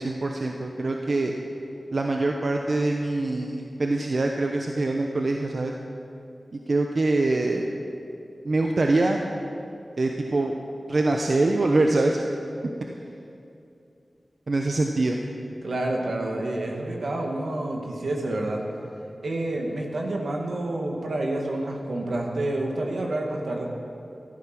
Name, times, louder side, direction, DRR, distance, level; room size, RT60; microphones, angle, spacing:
voice 1, 0.0-1.3 1.9-5.7 6.5-7.7 8.4-9.2 10.0-10.5 10.9-12.2 14.5-15.2, right 2 dB, 65° right, 2 dB, 0.9 m, -24 dB
voice 2, 15.6-18.7 19.2-23.7, right 1 dB, 90° right, 1 dB, 1.9 m, -28 dB
14.5 x 13.5 x 6.0 m, 2.7 s
cardioid pair, 45°, 0 cm